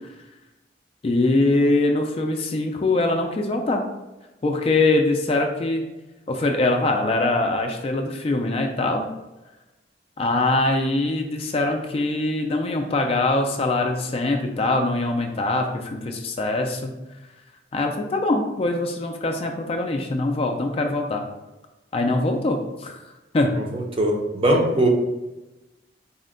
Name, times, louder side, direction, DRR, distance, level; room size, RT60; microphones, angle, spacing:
voice 1, 1.0-3.8 4.4-5.9 6.3-9.1 10.2-16.9 17.7-21.2 21.9-23.0 23.3-23.5, left 2 dB, 30° left, 3 dB, 0.3 m, -23 dB
voice 2, 23.6-24.9, right 1 dB, 30° right, 1 dB, 0.6 m, -21 dB
4.2 x 2.1 x 3.7 m, 1.0 s
head